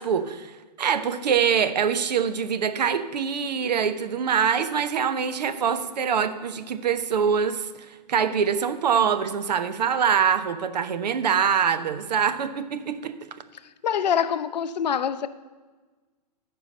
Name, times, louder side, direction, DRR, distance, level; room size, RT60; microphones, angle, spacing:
voice 1, 0.0-13.1, right 7 dB, 75° right, 11 dB, 0.8 m, -24 dB
voice 2, 13.8-15.3, left 8 dB, 80° left, 12 dB, 0.7 m, -25 dB
10.0 x 4.7 x 6.6 m, 1.3 s
hypercardioid pair, 155°, 21 cm